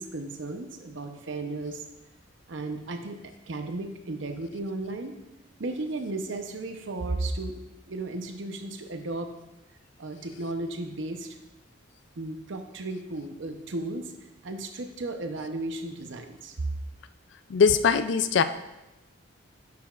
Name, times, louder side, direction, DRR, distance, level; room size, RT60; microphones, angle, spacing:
voice 1, 0.0-1.8 2.5-3.2 3.5-5.1 5.6-7.6 7.9-9.3 10.0-11.4 12.2-14.1 14.4-16.7, right 2 dB, 60° right, 6 dB, 0.7 m, -34 dB
voice 2, 17.5-18.4, left 6 dB, 55° left, 12 dB, 0.3 m, -21 dB
9.4 x 6.8 x 2.4 m, 0.98 s
head